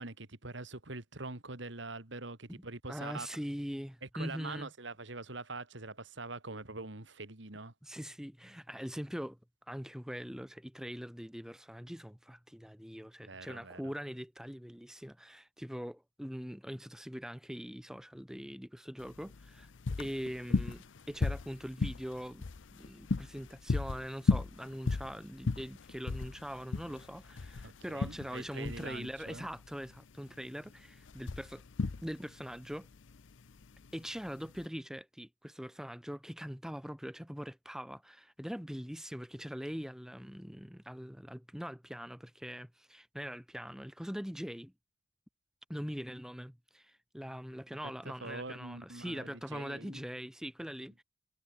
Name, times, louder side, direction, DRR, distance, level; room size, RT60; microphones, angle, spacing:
voice 1, 0.0-3.3 4.0-7.7 13.2-13.9 27.6-29.5 47.8-50.0, right 3 dB, 65° right, 2.6 m, -44 dB
voice 2, 2.9-4.7 7.8-9.4 9.7-19.7 20.0-31.6 32.0-32.9 33.9-44.7 45.7-51.0, equal, 5° right, 1.0 m, -42 dB
sound 1, 19.0-34.7, left 3 dB, 70° left, 0.6 m, -36 dB
head